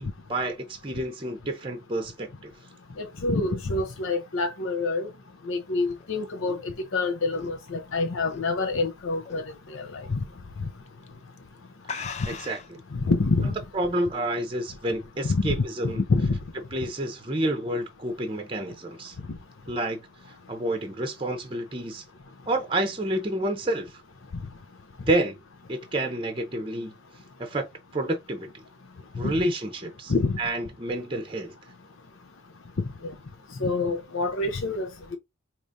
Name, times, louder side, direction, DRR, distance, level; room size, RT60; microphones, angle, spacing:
voice 1, 0.0-2.5 12.3-12.8 13.7-16.0 16.7-19.2 19.7-20.0 20.5-22.0 22.5-24.0 25.1-25.4 25.7-26.9 27.4-27.6 27.9-28.5 29.2-31.5, right 1 dB, 25° right, 0.7 m, -29 dB
voice 2, 3.0-5.1 5.5-9.4 9.7-10.2 12.9-13.5 15.2-15.6 15.8-16.4 29.2-29.3 30.1-30.4 33.6-35.2, left 3 dB, 85° left, 0.7 m, -26 dB
sound 1, 5.7-8.8 9.2-9.6 9.9-10.0 10.9-11.1 11.4-11.5 11.8-12.8, left 5 dB, 35° left, 0.4 m, -39 dB
4.8 x 3.0 x 2.6 m
head